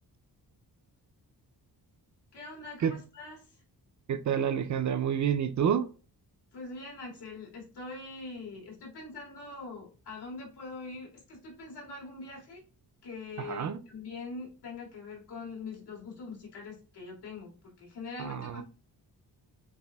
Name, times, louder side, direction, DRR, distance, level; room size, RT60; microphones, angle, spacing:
voice 1, 2.3-3.6 6.5-12.6 13.0-18.6, left 3 dB, 85° left, -2 dB, 2.1 m, -43 dB
voice 2, 4.1-5.9 13.4-13.8 18.2-18.6, right 8 dB, 50° right, 9 dB, 0.4 m, -28 dB
6.8 x 2.6 x 2.2 m, 0.36 s
wide cardioid pair, 135°, 39 cm